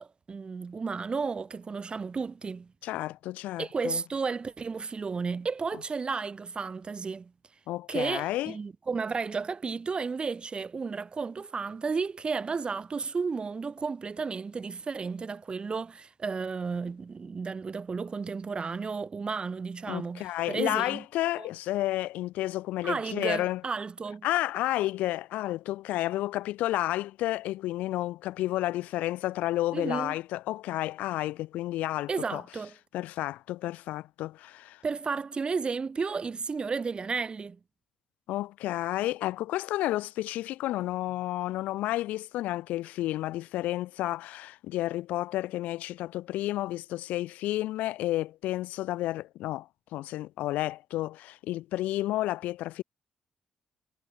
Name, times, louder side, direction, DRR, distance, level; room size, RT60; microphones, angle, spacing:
voice 1, 0.0-2.7 3.6-7.3 7.9-21.0 21.4-21.5 22.8-24.3 29.7-30.2 32.1-32.7 34.8-37.6, right 5 dB, 40° right, 1.6 m, -33 dB
voice 2, 2.8-4.0 7.7-8.5 19.9-23.6 24.2-32.4 32.9-34.8 38.3-52.8, left 16 dB, 80° left, 0.5 m, -31 dB
hypercardioid pair, 50°, 3 cm